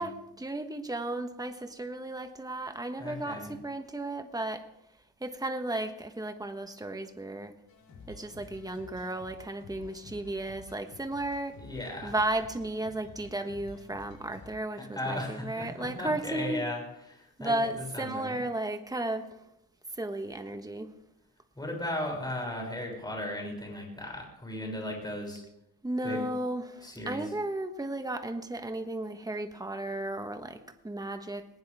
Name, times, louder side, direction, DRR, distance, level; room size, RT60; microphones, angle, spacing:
voice 1, 0.0-4.6 5.2-7.5 8.1-11.6 12.0-16.7 17.4-19.4 19.9-20.9 25.8-31.5, right 1 dB, 10° right, 7 dB, 1.4 m, -34 dB
voice 2, 3.0-3.5 11.6-12.2 14.9-16.8 17.1-18.4 21.6-25.4 26.0-26.3 26.8-27.3, left 1 dB, 10° left, -1 dB, 6.9 m, -36 dB
sound 1, 7.7-14.5, left 2 dB, 90° left, 4.8 m, -51 dB
20.0 x 18.5 x 3.6 m, 0.82 s
cardioid pair, 110°, 34 cm